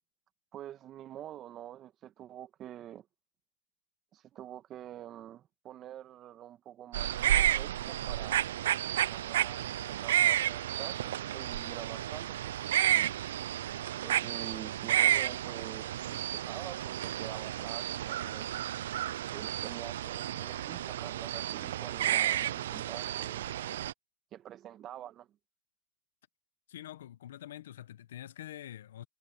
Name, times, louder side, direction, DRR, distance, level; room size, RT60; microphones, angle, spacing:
voice 1, 0.5-3.1 4.1-8.4 9.0-13.2 14.0-18.5 19.3-23.4 24.3-25.4, right 12 dB, 40° right, 1.7 m, -47 dB
sound 1, 6.9-23.9, right 12 dB, 85° right, 0.6 m, -31 dB
voice 2, 26.7-29.0, left 12 dB, 85° left, 1.1 m, -46 dB
hypercardioid pair, 100°, 0 cm